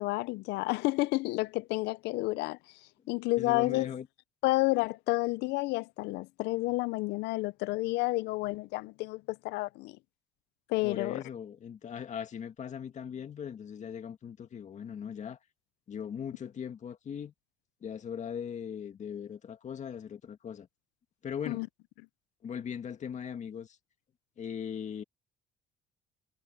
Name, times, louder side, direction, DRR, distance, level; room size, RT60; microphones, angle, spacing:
voice 1, 0.0-2.6 3.1-3.9 4.4-10.0 10.7-11.2 21.5-21.7, left 21 dB, 85° left, 0.5 m, -30 dB
voice 2, 3.4-4.1 10.8-15.4 15.9-17.3 17.8-20.7 21.2-21.6 22.4-23.8 24.4-25.0, left 8 dB, 45° left, 2.0 m, -39 dB
cardioid pair, 110°, 17 cm